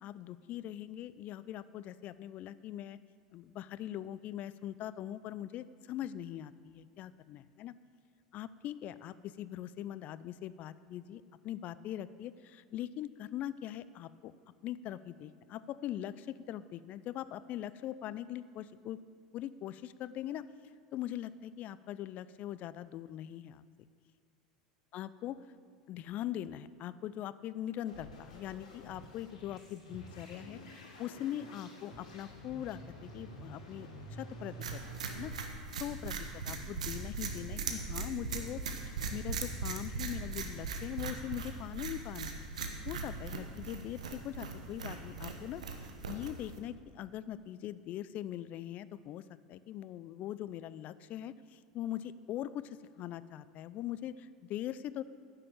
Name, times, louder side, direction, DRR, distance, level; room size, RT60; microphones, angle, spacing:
voice 1, 0.0-3.0 3.3-7.7 8.3-14.3 14.6-19.0 19.3-20.5 20.9-23.6 24.9-25.4 25.9-34.8 35.1-35.3 35.8-42.4 42.9-45.6 46.1-55.0, left 12 dB, 45° left, 16 dB, 0.4 m, -41 dB
sound 1, 27.9-35.3, right 1 dB, 80° left, 2.3 m, -49 dB
sound 2, 34.6-46.6, right 4 dB, 85° right, 1.0 m, -39 dB
9.9 x 6.8 x 7.1 m, 2.1 s
hypercardioid pair, 85°, 4 cm